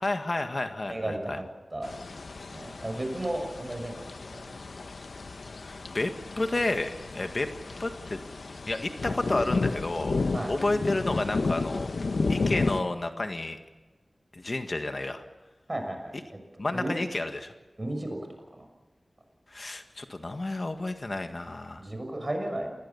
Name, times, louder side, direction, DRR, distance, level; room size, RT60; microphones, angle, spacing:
voice 1, 0.0-1.4 5.6-6.1 6.4-7.5 7.8-8.2 8.7-10.2 10.5-11.9 12.3-13.6 14.3-15.2 16.6-17.5 19.5-21.8, left 2 dB, 45° left, 6 dB, 1.7 m, -30 dB
voice 2, 0.9-1.4 1.7-1.9 2.5-4.5 10.3-10.5 15.7-16.4 16.7-17.0 17.8-18.2 18.5-18.6 21.8-22.7, right 1 dB, 30° right, 4 dB, 6.3 m, -34 dB
sound 1, 1.8-12.8, left 3 dB, 80° left, 1.1 m, -32 dB
28.0 x 21.0 x 7.1 m, 1.2 s
wide cardioid pair, 80°, 0 cm